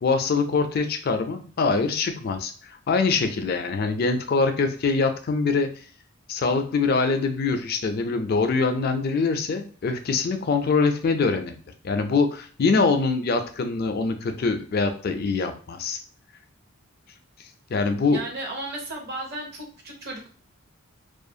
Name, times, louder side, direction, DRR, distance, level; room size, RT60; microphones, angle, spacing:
voice 1, 0.0-5.7 6.3-11.5 11.8-16.0 17.7-18.2, left 4 dB, 45° left, 6 dB, 0.4 m, -24 dB
voice 2, 18.1-20.3, right 2 dB, 50° right, 0 dB, 0.7 m, -34 dB
2.4 x 2.4 x 2.6 m, 0.41 s
head